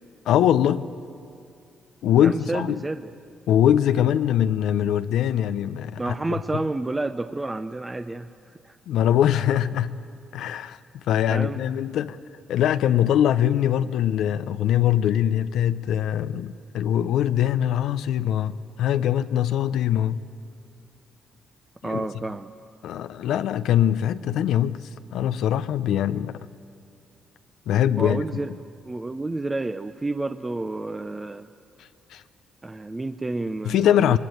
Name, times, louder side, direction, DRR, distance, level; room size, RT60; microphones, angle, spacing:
voice 1, 0.3-0.9 2.0-2.8 3.5-6.4 8.9-10.0 10.3-10.8 11.1-12.2 12.5-20.2 21.8-22.1 22.8-26.4 27.7-28.4 32.1-32.2 33.6-34.2, left 10 dB, 80° left, 0.5 m, -22 dB
voice 2, 2.1-3.1 6.0-8.3 8.6-8.8 11.3-11.6 21.8-22.5 28.0-28.5 28.8-31.5 32.6-34.2, right 2 dB, 20° right, 0.6 m, -30 dB
21.5 x 20.5 x 9.1 m
cardioid pair, 90°, 0 cm